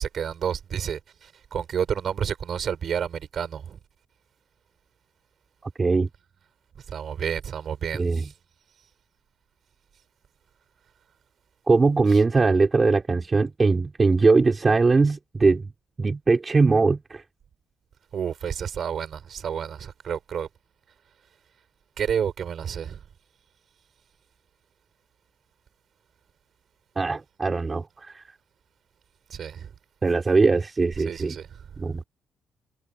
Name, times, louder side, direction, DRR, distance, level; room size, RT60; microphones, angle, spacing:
voice 1, 0.0-3.8 6.9-8.3 12.1-12.2 18.1-20.5 22.0-23.0 29.3-29.7 31.0-31.9, right 8 dB, 55° right, 6.0 m, -30 dB
voice 2, 5.6-6.1 7.9-8.3 11.7-15.7 16.0-17.2 27.0-28.2 30.0-31.4 31.8-32.0, right 3 dB, 30° right, 3.2 m, -21 dB
cardioid pair, 90°, 0 cm